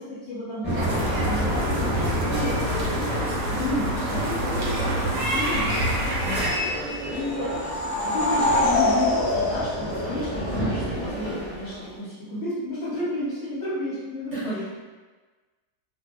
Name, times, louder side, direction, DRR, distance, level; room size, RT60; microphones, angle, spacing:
voice 1, 0.0-3.0 3.5-5.8 7.1-7.6 8.0-14.4, left 1 dB, 55° left, -10 dB, 1.0 m, -32 dB
sound 1, 0.6-11.9, right 1 dB, 10° left, 0.6 m, -30 dB
sound 2, 0.8-6.5, equal, 80° right, 1.2 m, -27 dB
voice 2, 6.2-6.6 14.3-14.6, right 1 dB, 50° right, -11 dB, 1.2 m, -32 dB
sound 3, 7.1-10.7, left 2 dB, 70° left, 1.0 m, -25 dB
2.6 x 2.5 x 2.2 m, 1.3 s
omnidirectional pair, 1.8 m